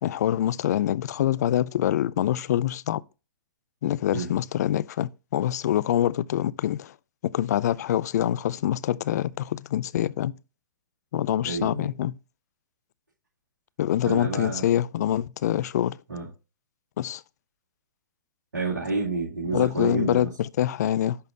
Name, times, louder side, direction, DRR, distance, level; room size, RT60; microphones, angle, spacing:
voice 1, 0.0-3.0 3.8-6.9 7.2-10.3 11.1-12.2 13.8-16.0 17.0-17.2 19.5-21.2, left 11 dB, 55° left, 0.4 m, -25 dB
voice 2, 11.4-11.9 14.0-14.7 16.1-16.3 18.5-20.3, right 3 dB, 80° right, 2.6 m, -29 dB
11.0 x 4.1 x 2.7 m
figure-of-eight pair, 110°, 10 cm